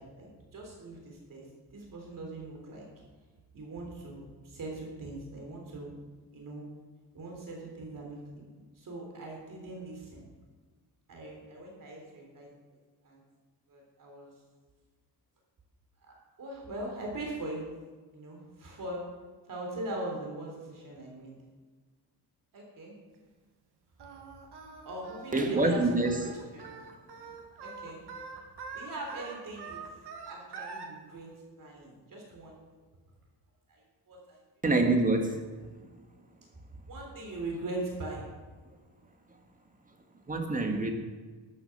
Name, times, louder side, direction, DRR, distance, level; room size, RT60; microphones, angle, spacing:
voice 1, 0.0-2.9 3.5-6.0 6.3-6.6 7.1-8.5 8.8-10.2 11.1-12.5 13.0-13.2 13.7-14.3 16.4-17.6 18.1-19.0 19.5-21.3 22.5-22.9 24.9-26.6 27.6-28.1 28.7-30.0 30.3-31.3 31.6-32.6 33.7-34.4 36.9-38.3, right 2 dB, 50° right, 0 dB, 3.6 m, -41 dB
Singing, 24.0-30.9, right 5 dB, 70° right, 2.0 m, -44 dB
voice 2, 25.3-26.2 34.6-35.4 40.3-40.9, right 2 dB, 20° right, 3 dB, 1.8 m, -26 dB
12.5 x 10.0 x 6.7 m, 1.4 s
wide cardioid pair, 145°, 41 cm